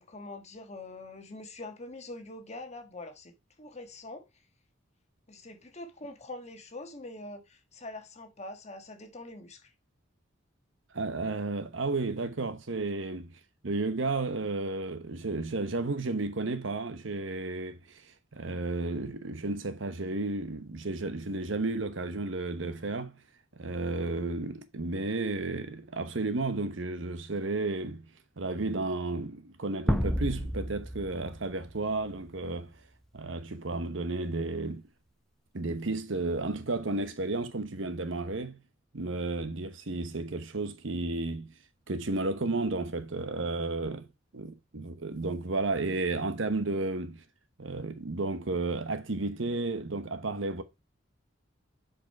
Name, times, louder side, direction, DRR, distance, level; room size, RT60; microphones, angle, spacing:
voice 1, 0.0-4.3 5.3-9.7, left 2 dB, 35° left, 1.4 m, -44 dB
voice 2, 10.9-18.0 18.3-23.2 23.6-28.1 28.4-32.7 33.1-34.8 35.5-38.6 38.9-41.5 41.9-44.1 44.3-47.2 47.6-50.6, right 2 dB, 70° right, 1.0 m, -32 dB
sound 1, 29.9-32.3, equal, ahead, 0.6 m, -31 dB
7.3 x 5.2 x 4.5 m
head